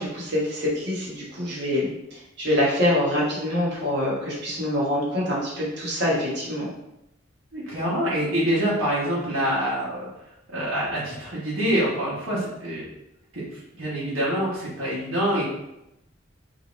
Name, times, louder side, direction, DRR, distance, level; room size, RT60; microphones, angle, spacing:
voice 1, 0.0-6.7, left 1 dB, 55° right, -5 dB, 1.3 m, -25 dB
voice 2, 7.5-10.1 10.5-12.9 13.3-13.4 13.8-15.5, equal, 85° right, -8 dB, 1.3 m, -25 dB
3.7 x 2.9 x 3.1 m, 0.86 s
head